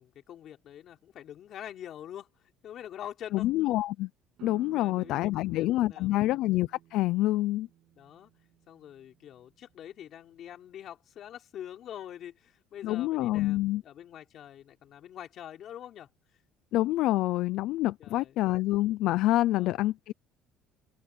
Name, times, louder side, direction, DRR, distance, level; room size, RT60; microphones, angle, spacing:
voice 1, 0.0-3.5 4.8-6.4 8.0-8.3 8.7-16.1 18.0-18.4 19.5-19.8, left 10 dB, 50° left, 3.9 m, -45 dB
voice 2, 3.3-4.1 4.4-7.7 12.8-13.8 16.7-20.1, left 16 dB, 65° left, 0.5 m, -27 dB
sound 1, 4.4-9.8, right 14 dB, 60° right, 7.1 m, -55 dB
cardioid pair, 140°, 0 cm